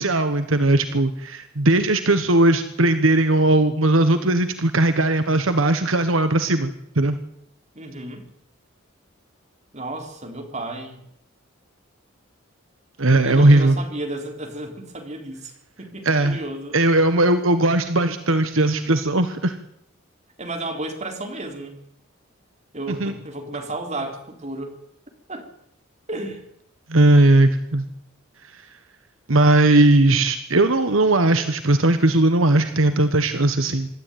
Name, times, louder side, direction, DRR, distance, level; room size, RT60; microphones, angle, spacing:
voice 1, 0.0-7.2 13.0-13.8 16.0-16.4 16.7-19.6 22.9-23.1 26.9-27.8 29.3-33.9, right 2 dB, 75° right, 10 dB, 1.4 m, -18 dB
voice 2, 7.8-8.2 9.7-11.0 13.1-15.5 15.8-16.8 20.4-21.8 22.7-24.8 25.3-25.5 26.1-26.4, right 2 dB, 35° right, 4 dB, 4.1 m, -33 dB
26.0 x 13.0 x 9.4 m, 0.76 s
head